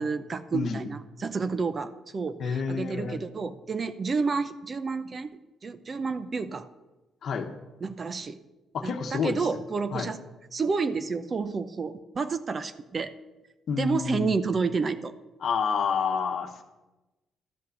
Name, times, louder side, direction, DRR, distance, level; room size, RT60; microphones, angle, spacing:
voice 1, 0.0-5.3 5.6-6.7 7.8-8.4 8.8-10.2 10.5-13.1 13.8-15.1, right 4 dB, 40° right, 12 dB, 0.6 m, -30 dB
voice 2, 0.5-0.8 2.4-3.2 7.2-7.5 8.7-9.6 9.9-10.1 13.7-14.4 15.4-16.6, left 6 dB, 60° left, 6 dB, 1.0 m, -29 dB
12.5 x 5.7 x 6.4 m, 1.1 s
cardioid pair, 90°, 0 cm